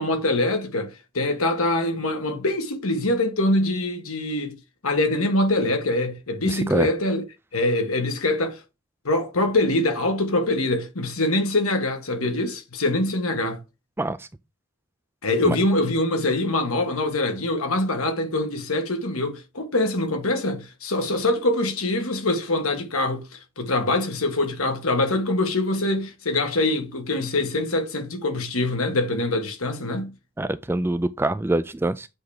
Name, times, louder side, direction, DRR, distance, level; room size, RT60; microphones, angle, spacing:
voice 1, 0.0-4.6 4.8-7.2 7.5-8.6 9.0-13.6 15.2-30.1, left 2 dB, 75° left, 1.6 m, -24 dB
voice 2, 6.4-6.9 14.0-14.3 15.5-15.6 30.4-32.1, right 1 dB, 10° right, 0.3 m, -24 dB
7.8 x 3.6 x 4.9 m
head